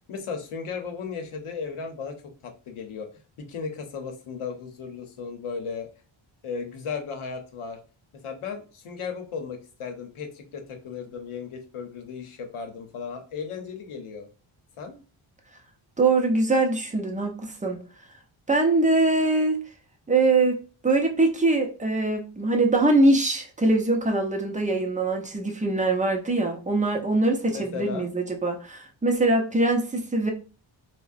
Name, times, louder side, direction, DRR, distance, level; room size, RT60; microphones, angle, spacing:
voice 1, 0.1-2.2 2.4-3.1 3.4-5.9 6.4-7.8 8.1-14.3 14.8-15.0 27.5-28.1, left 5 dB, 80° left, 0.8 m, -35 dB
voice 2, 16.0-17.8 18.5-19.6 20.1-20.6 20.8-30.3, right 2 dB, 15° right, 0.5 m, -23 dB
3.5 x 2.1 x 2.4 m
wide cardioid pair, 140°, 49 cm